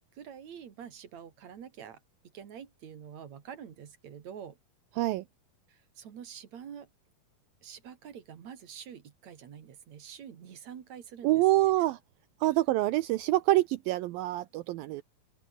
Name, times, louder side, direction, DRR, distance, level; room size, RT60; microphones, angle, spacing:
voice 1, 0.1-2.0 2.3-4.6 5.7-6.9 7.6-11.4 12.4-12.5, right 8 dB, 50° right, 2.9 m, -46 dB
voice 2, 11.2-12.0 12.4-15.0, right 17 dB, 80° right, 2.3 m, -26 dB
open air
omnidirectional pair, 4.5 m